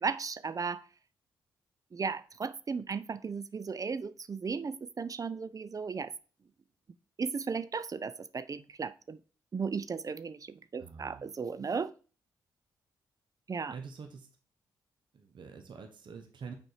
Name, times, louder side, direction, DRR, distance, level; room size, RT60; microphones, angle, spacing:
voice 1, 0.0-0.8 1.9-6.1 7.2-9.2 9.5-11.9 13.5-13.7, right 5 dB, 40° right, 14 dB, 0.5 m, -35 dB
voice 2, 10.8-11.3 13.7-14.3 15.1-16.5, right 5 dB, 55° right, 5 dB, 1.1 m, -46 dB
6.3 x 4.4 x 4.7 m, 0.38 s
hypercardioid pair, 40°, 9 cm